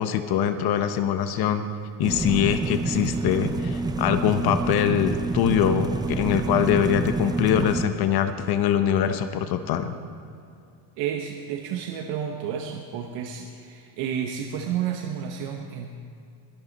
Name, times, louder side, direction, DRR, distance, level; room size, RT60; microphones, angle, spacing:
voice 1, 0.0-1.7 2.0-9.9, left 9 dB, 55° left, 9 dB, 0.9 m, -23 dB
sound 1, 2.0-7.8, right 3 dB, 10° right, 0.3 m, -28 dB
voice 2, 11.0-15.9, right 8 dB, 75° right, 3 dB, 1.2 m, -31 dB
22.5 x 11.5 x 4.1 m, 2.5 s
cardioid pair, 145°, 44 cm